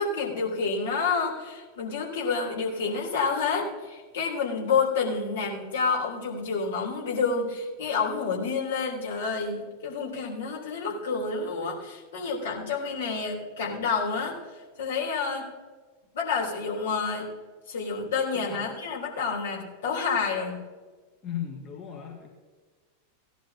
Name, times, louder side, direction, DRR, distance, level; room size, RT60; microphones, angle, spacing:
voice 1, 0.0-14.4 14.8-15.5 16.1-17.3 17.7-20.6, left 5 dB, 60° left, -2 dB, 3.6 m, -29 dB
voice 2, 18.3-18.7 21.2-22.3, left 9 dB, 30° left, 0 dB, 1.8 m, -36 dB
18.0 x 11.5 x 2.9 m, 1.4 s
figure-of-eight pair, 90°, 0 cm